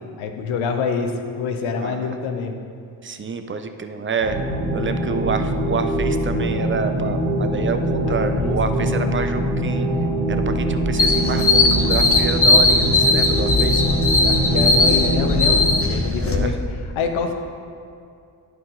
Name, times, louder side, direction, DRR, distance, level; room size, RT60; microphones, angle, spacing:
voice 1, 0.2-1.1 1.4-2.6 8.1-8.9 14.2-17.3, left 5 dB, 70° left, 5 dB, 0.8 m, -26 dB
voice 2, 1.8-2.1 3.0-4.4 4.7-9.9 10.3-14.0 16.1-16.5, right 5 dB, 25° right, 8 dB, 0.6 m, -28 dB
sound 1, 4.2-15.8, right 1 dB, 80° right, 1.3 m, -23 dB
sound 2, 11.0-16.4, left 3 dB, 25° left, 1.0 m, -18 dB
11.0 x 4.6 x 3.8 m, 2.4 s
hypercardioid pair, 45°, 50 cm